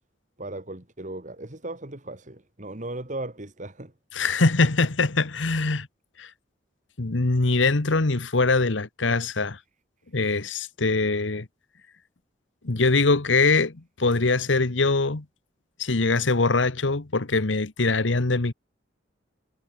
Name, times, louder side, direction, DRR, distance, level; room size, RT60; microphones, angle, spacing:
voice 1, 0.4-3.9, right 2 dB, 40° right, 2.6 m, -37 dB
voice 2, 4.1-5.9 6.2-6.3 7.0-9.6 10.1-11.5 12.6-15.2 15.8-18.5, left 3 dB, 90° left, 1.3 m, -23 dB
head